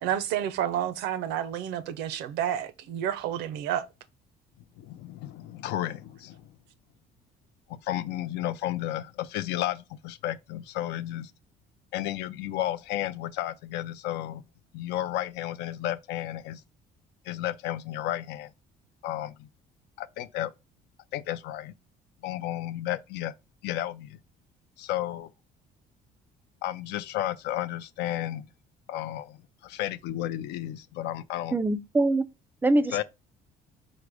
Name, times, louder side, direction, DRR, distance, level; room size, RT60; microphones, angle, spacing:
voice 1, 0.0-3.9, right 10 dB, 90° right, 0.5 m, -30 dB
voice 2, 4.8-6.5 7.7-11.3 11.9-14.4 14.7-16.6 17.2-18.5 19.0-19.5 20.0-20.5 21.1-21.7 22.2-23.3 23.6-24.2 24.8-25.3 26.6-28.5 28.9-31.5 32.9-33.0, left 13 dB, 80° left, 0.4 m, -32 dB
voice 3, 31.5-32.3 32.6-33.0, right 2 dB, 10° right, 0.3 m, -23 dB
4.7 x 2.1 x 4.7 m
cardioid pair, 110°, 17 cm